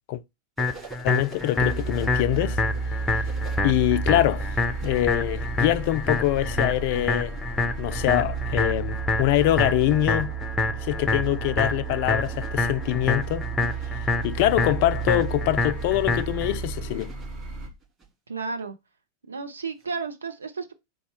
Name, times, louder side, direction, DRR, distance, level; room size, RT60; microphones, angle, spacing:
sound 1, 0.6-16.6, left 3 dB, 10° left, 0.6 m, -27 dB
sound 2, 0.6-3.6 4.7-18.1 19.8-19.9, right 5 dB, 20° right, 2.8 m, -48 dB
voice 1, 1.0-2.6 3.6-4.5 4.8-7.4 7.8-10.3 10.8-13.5 14.2-17.1, left 15 dB, 50° left, 0.3 m, -24 dB
sound 3, 1.6-17.7, right 5 dB, 35° right, 1.1 m, -32 dB
voice 2, 18.3-18.7 19.3-20.7, right 4 dB, 75° right, 0.6 m, -32 dB
4.1 x 2.3 x 4.6 m
figure-of-eight pair, 90°, 0 cm